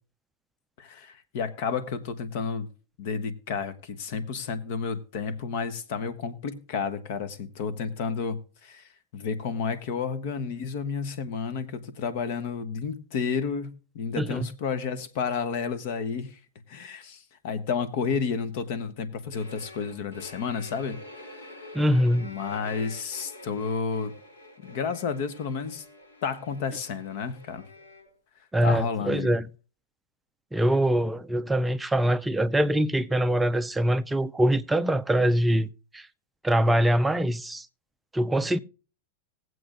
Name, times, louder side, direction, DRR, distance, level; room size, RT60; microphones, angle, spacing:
voice 1, 0.8-2.7 3.0-16.4 16.7-21.6 22.2-24.2 24.6-25.9 26.2-27.6 28.6-29.3, left 5 dB, 60° left, 1.1 m, -31 dB
sound 1, 19.3-28.1, left 2 dB, 85° left, 3.8 m, -47 dB
voice 2, 21.7-22.3 28.5-29.5 30.5-36.1 36.4-37.7 38.1-38.6, equal, 5° right, 0.4 m, -23 dB
19.0 x 7.8 x 2.5 m
supercardioid pair, 135°, 0 cm